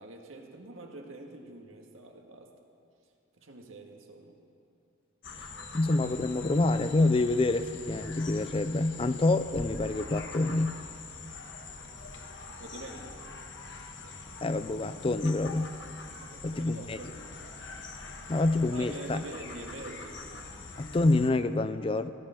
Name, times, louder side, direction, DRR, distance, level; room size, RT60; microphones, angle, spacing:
voice 1, 0.0-2.5 3.4-4.4 12.0-12.1 12.6-13.2 16.2-17.1 18.7-20.2, right 2 dB, 80° right, 2 dB, 1.8 m, -45 dB
sound 1, 5.2-21.3, left 3 dB, 65° left, 1.3 m, -44 dB
voice 2, 5.7-10.8 14.4-15.8 16.4-17.0 18.3-19.2 20.8-22.1, left 2 dB, 25° left, 11 dB, 0.4 m, -27 dB
16.5 x 14.0 x 5.9 m, 2.4 s
head